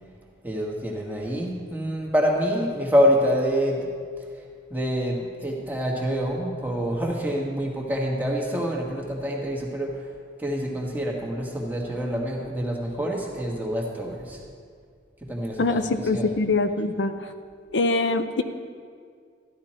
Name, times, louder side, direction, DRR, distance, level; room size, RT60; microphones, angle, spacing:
voice 1, 0.4-3.9 4.7-9.9 10.4-14.4 15.2-15.8 16.1-16.3, equal, 10° right, -1 dB, 1.5 m, -26 dB
voice 2, 15.6-17.3 17.7-18.4, left 3 dB, 85° left, 8 dB, 0.7 m, -24 dB
13.5 x 11.5 x 4.4 m, 2.1 s
head